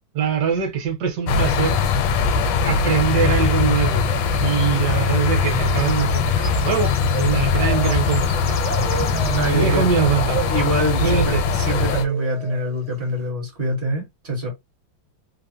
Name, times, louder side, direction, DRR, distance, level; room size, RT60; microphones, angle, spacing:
voice 1, 0.1-1.8 2.6-4.1 4.4-8.6 8.9-9.0 9.5-10.4 11.0-11.4, right 7 dB, 65° right, 1.3 m, -23 dB
sound 1, 1.3-12.1, left 5 dB, 80° left, 1.3 m, -21 dB
sound 2, 4.1-4.5 4.8-5.2 5.5-13.1, right 7 dB, 80° right, 0.6 m, -34 dB
sound 3, 5.6-9.6 10.5-10.6 11.2-11.3 11.7-12.0 12.4-12.5 12.8-13.0, left 2 dB, 40° left, 0.5 m, -40 dB
voice 2, 8.9-9.9 10.5-14.5, right 1 dB, 45° right, 0.7 m, -25 dB
3.3 x 2.1 x 2.5 m
omnidirectional pair, 2.1 m